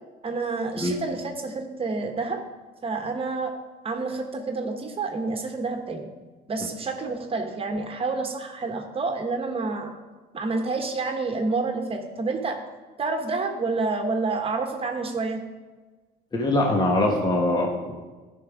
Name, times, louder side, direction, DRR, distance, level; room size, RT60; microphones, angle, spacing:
voice 1, 0.2-2.4 2.8-3.5 3.8-6.1 6.5-9.9 10.3-12.6 13.0-15.4, right 3 dB, 35° right, 4 dB, 1.2 m, -28 dB
voice 2, 16.3-17.9, left 1 dB, 25° left, 0 dB, 1.3 m, -23 dB
13.0 x 5.6 x 5.0 m, 1.3 s
cardioid pair, 110°, 17 cm